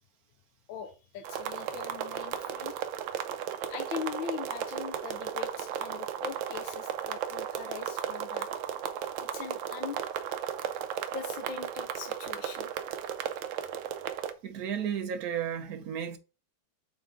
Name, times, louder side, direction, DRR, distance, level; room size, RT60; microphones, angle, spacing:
voice 1, 0.7-2.8 3.7-8.5 9.2-10.0 11.1-12.7, left 7 dB, 75° left, 1.5 m, -41 dB
sound 1, 1.2-14.3, right 9 dB, 75° right, 1.4 m, -35 dB
voice 2, 14.4-16.2, right 8 dB, 60° right, 1.1 m, -33 dB
8.1 x 3.5 x 3.7 m
omnidirectional pair, 2.2 m